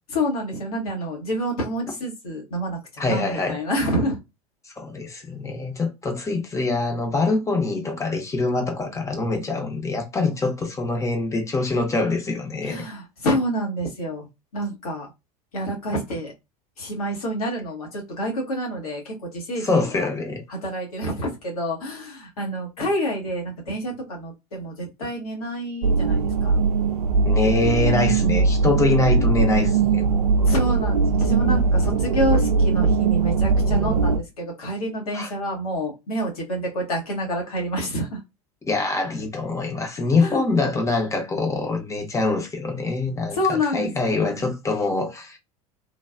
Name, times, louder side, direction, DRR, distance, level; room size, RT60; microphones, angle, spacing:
voice 1, 0.1-4.2 12.6-14.3 14.5-15.1 15.5-16.3 16.8-20.1 20.5-26.6 30.4-38.2 40.2-40.4 43.3-44.5, equal, 70° left, 1.1 m, -28 dB
voice 2, 3.0-3.6 4.8-12.8 19.6-20.4 27.3-30.2 35.1-35.3 38.7-43.4 43.7-45.4, left 3 dB, 15° left, 0.7 m, -24 dB
sound 1, 25.8-34.2, right 4 dB, 75° right, 0.4 m, -20 dB
3.2 x 2.3 x 2.3 m
figure-of-eight pair, 80°, 19 cm